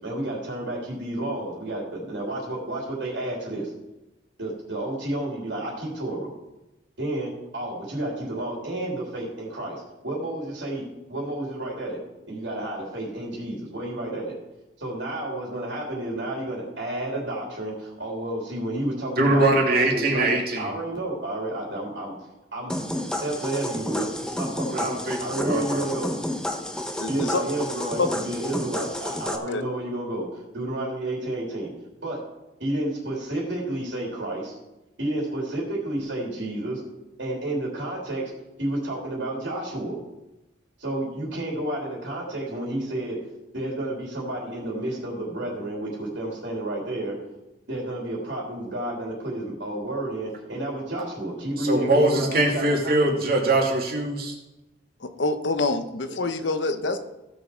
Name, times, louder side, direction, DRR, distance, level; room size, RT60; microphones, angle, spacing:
voice 1, 0.0-3.7 4.4-6.3 7.0-12.0 12.3-14.4 14.8-22.1 22.5-24.1 24.4-24.9 25.2-26.1 27.1-31.7 32.0-32.2 32.6-34.6 35.0-36.8 37.2-38.3 38.6-40.0 40.8-43.2 43.5-47.2 47.7-53.1, right 1 dB, 85° right, -2 dB, 3.3 m, -31 dB
voice 2, 19.2-20.7 24.7-25.8 51.6-54.3, right 2 dB, 60° right, 0 dB, 2.4 m, -22 dB
sound 1, 22.7-29.4, left 1 dB, 5° left, 1.0 m, -30 dB
voice 3, 27.0-27.4 28.0-28.1 29.5-29.6 55.0-57.0, left 3 dB, 80° left, 9 dB, 1.0 m, -26 dB
16.0 x 6.4 x 4.6 m, 0.98 s
head